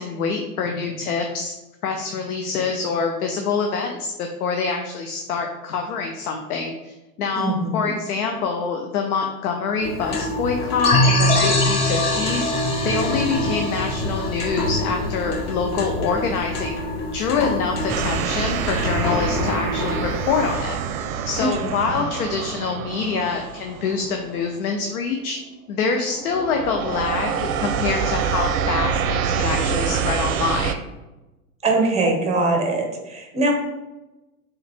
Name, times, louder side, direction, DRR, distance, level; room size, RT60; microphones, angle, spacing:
voice 1, 0.0-1.5 1.8-12.5 12.8-16.8 17.1-20.8 21.3-25.4 25.7-30.8, left 5 dB, 75° left, 3 dB, 0.7 m, -25 dB
voice 2, 7.4-7.9 21.4-21.5 21.8-22.0 31.6-33.5, right 2 dB, 15° right, 3 dB, 0.8 m, -22 dB
sound 1, 9.8-20.5, left 2 dB, 35° left, 1.0 m, -28 dB
sound 2, 10.8-15.3, left 1 dB, 15° left, 0.3 m, -22 dB
sound 3, 17.9-24.8 25.3-25.6 25.9-30.7, right 7 dB, 65° right, 0.5 m, -26 dB
3.6 x 3.1 x 3.4 m, 1.0 s
hypercardioid pair, 105°, 45 cm